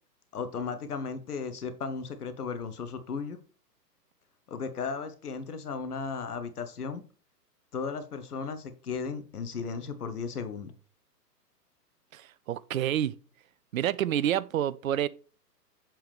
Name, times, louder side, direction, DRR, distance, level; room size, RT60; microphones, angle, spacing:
voice 1, 0.3-3.4 4.5-7.0 7.7-10.7, left 5 dB, 65° left, 1.1 m, -35 dB
voice 2, 12.1-13.1 13.7-15.1, right 11 dB, 55° right, 0.5 m, -28 dB
7.3 x 4.7 x 3.5 m
figure-of-eight pair, 115°, 49 cm